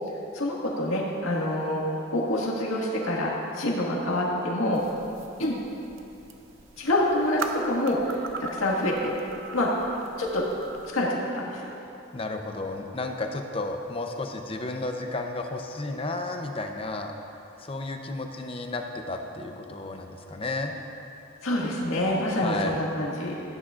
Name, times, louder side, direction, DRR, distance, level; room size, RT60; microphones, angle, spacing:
voice 1, 0.3-1.8 2.1-4.8 5.4-5.6 6.8-9.2 9.5-9.9 10.2-10.5 10.9-11.7 21.4-23.4, left 1 dB, 90° left, -3 dB, 1.9 m, -26 dB
sound 1, 4.7-10.9, right 3 dB, 75° right, 0.7 m, -40 dB
voice 2, 12.1-17.1 17.6-20.7 22.4-22.8, left 2 dB, 30° left, 4 dB, 0.7 m, -32 dB
16.5 x 9.9 x 2.5 m, 2.8 s
head